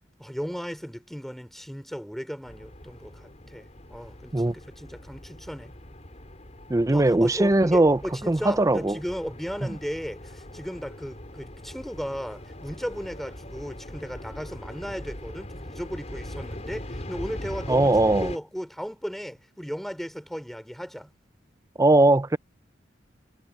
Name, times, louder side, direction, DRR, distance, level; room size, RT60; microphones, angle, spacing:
voice 1, 0.2-3.6 3.9-5.7 6.9-21.1, equal, ahead, 4.2 m, -36 dB
sound 1, 2.5-18.4, left 1 dB, 35° left, 4.5 m, -41 dB
voice 2, 6.7-8.0 8.3-9.0 9.6-9.7 17.7-18.3 21.8-22.4, right 2 dB, 20° right, 0.5 m, -20 dB
head